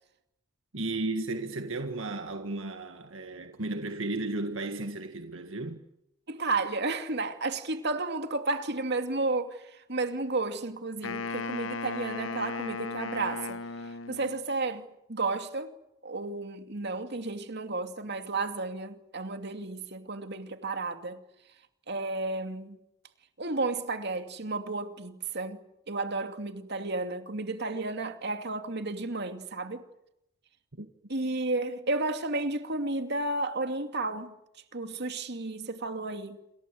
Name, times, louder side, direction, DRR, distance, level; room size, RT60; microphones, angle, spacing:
voice 1, 0.7-5.8 30.8-30.9, right 2 dB, 75° right, 1.8 m, -34 dB
voice 2, 6.3-15.7 16.0-21.2 21.9-22.8 23.4-25.6 25.9-29.9 31.1-34.3 34.7-36.4, right 3 dB, 55° right, 2.6 m, -32 dB
Wind instrument woodwind instrument, 11.0-14.5, left 4 dB, 80° left, 1.1 m, -36 dB
28.0 x 26.0 x 7.9 m
head